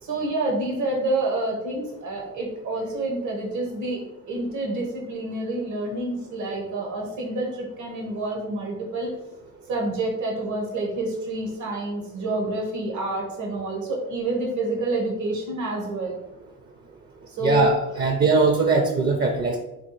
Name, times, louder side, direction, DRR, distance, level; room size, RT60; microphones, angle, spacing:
voice 1, 0.0-4.0 4.3-9.1 9.7-16.1 17.3-17.6, right 2 dB, 75° right, -1 dB, 1.1 m, -28 dB
voice 2, 17.4-19.6, right 3 dB, 35° right, 4 dB, 0.5 m, -21 dB
4.5 x 2.4 x 3.9 m, 0.95 s
cardioid pair, 90°, 30 cm